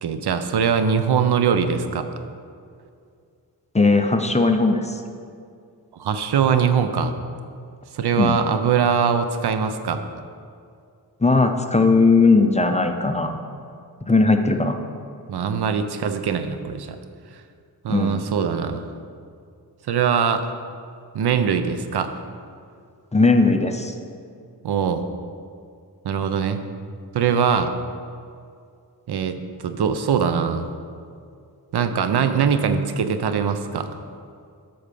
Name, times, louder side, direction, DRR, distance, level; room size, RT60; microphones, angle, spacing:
voice 1, 0.0-2.1 6.0-7.1 7.9-10.0 15.3-17.0 17.8-18.8 19.9-20.5 21.1-22.1 24.6-25.0 26.0-26.6 27.1-27.8 29.1-29.4 29.6-30.7 31.7-33.9, right 7 dB, 75° right, 9 dB, 0.6 m, -22 dB
voice 2, 3.7-5.0 8.2-8.4 11.2-13.4 14.0-14.8 17.9-18.2 23.1-23.9, left 3 dB, 15° left, 6 dB, 0.5 m, -18 dB
8.4 x 4.3 x 6.8 m, 2.3 s
wide cardioid pair, 85°, 39 cm